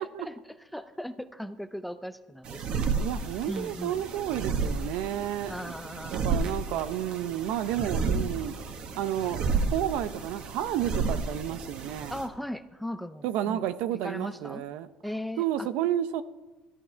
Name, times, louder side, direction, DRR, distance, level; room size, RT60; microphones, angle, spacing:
voice 1, 0.0-2.8 3.5-4.0 5.5-6.5 12.1-13.6 14.0-14.7 15.0-15.7, equal, ahead, 0.5 m, -38 dB
sound 1, 2.4-12.3, right 4 dB, 45° right, 1.3 m, -32 dB
voice 2, 3.0-5.5 5.9-8.5 9.0-12.2 13.2-14.9 15.4-16.2, right 11 dB, 75° right, 0.7 m, -31 dB
13.5 x 12.0 x 4.6 m
cardioid pair, 150°, 2 cm